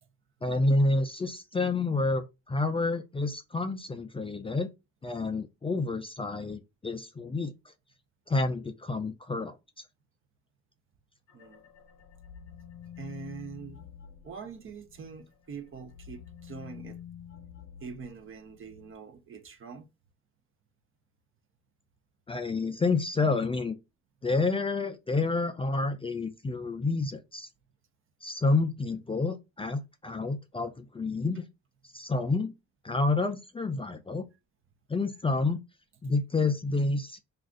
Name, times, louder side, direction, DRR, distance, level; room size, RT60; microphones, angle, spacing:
voice 1, 0.4-4.7 5.0-7.5 8.3-9.5 22.3-23.8 24.2-27.5 28.2-31.4 31.9-32.5 32.8-34.2 34.9-35.6 36.0-37.2, left 3 dB, 20° left, 0.4 m, -29 dB
sound 1, 11.3-15.2 15.5-18.9, left 8 dB, 60° left, 0.8 m, -49 dB
voice 2, 13.0-13.9 14.2-17.0 17.8-19.9, right 5 dB, 45° right, 0.6 m, -44 dB
2.5 x 2.4 x 3.5 m
cardioid pair, 80°, 31 cm